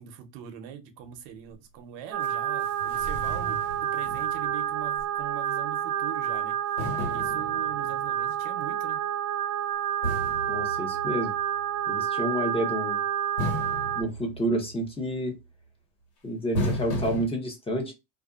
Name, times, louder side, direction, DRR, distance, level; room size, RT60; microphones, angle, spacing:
voice 1, 0.0-6.6 7.1-9.0, right 10 dB, 70° right, 0.8 m, -42 dB
sound 1, 2.1-14.0, right 10 dB, 40° right, 0.4 m, -29 dB
sound 2, 2.2-2.3 2.6-4.7 5.0-5.1 6.8-8.1 10.0-11.4 13.4-14.9 16.5-17.3, equal, 80° left, 1.5 m, -34 dB
voice 2, 10.5-11.3 11.9-13.0 14.0-15.4 16.2-17.9, right 1 dB, 10° left, 0.7 m, -29 dB
2.6 x 2.3 x 2.3 m
cardioid pair, 120°, 46 cm